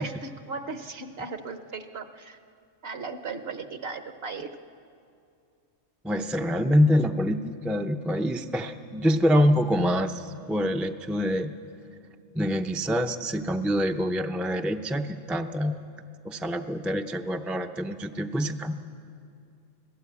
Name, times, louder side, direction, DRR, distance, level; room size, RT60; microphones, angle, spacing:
voice 1, 0.0-2.4 2.8-4.5, right 4 dB, 55° right, 8 dB, 1.2 m, -36 dB
voice 2, 6.0-11.5 12.3-15.8 16.2-18.7, equal, ahead, 5 dB, 0.4 m, -25 dB
25.5 x 17.0 x 8.4 m, 2.4 s
omnidirectional pair, 1.3 m